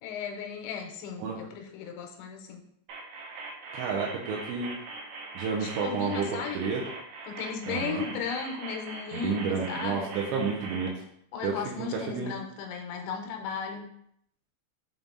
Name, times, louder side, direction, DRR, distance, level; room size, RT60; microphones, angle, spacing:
voice 1, 0.0-2.6 5.6-6.6 7.2-10.1 11.3-13.9, left 6 dB, 90° left, 3 dB, 3.1 m, -36 dB
sound 1, 2.9-10.9, right 3 dB, 75° right, 2.9 m, -41 dB
voice 2, 3.7-4.8 5.4-6.8 7.7-8.0 9.1-11.0 11.4-12.4, right 5 dB, 90° right, -2 dB, 3.1 m, -31 dB
7.5 x 3.6 x 3.9 m, 0.71 s
omnidirectional pair, 5.2 m